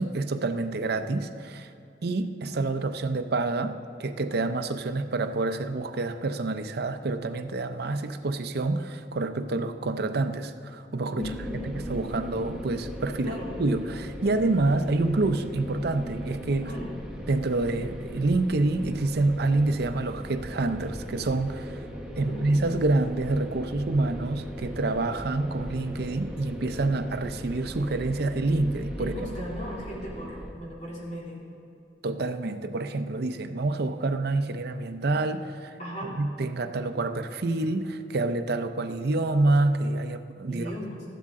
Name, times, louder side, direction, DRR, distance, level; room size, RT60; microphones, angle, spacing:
voice 1, 0.0-1.7 2.0-16.7 17.3-21.8 22.2-29.1 32.0-35.7 36.2-40.7, right 2 dB, 60° right, 8 dB, 0.6 m, -27 dB
voice 2, 11.1-11.7 13.2-13.5 16.6-16.9 22.2-22.4 29.0-31.4 35.8-36.1 40.5-41.0, left 1 dB, 45° left, -5 dB, 2.9 m, -37 dB
sound 1, 11.2-30.5, equal, 5° right, 0.9 m, -38 dB
13.5 x 11.5 x 3.7 m, 2.7 s
head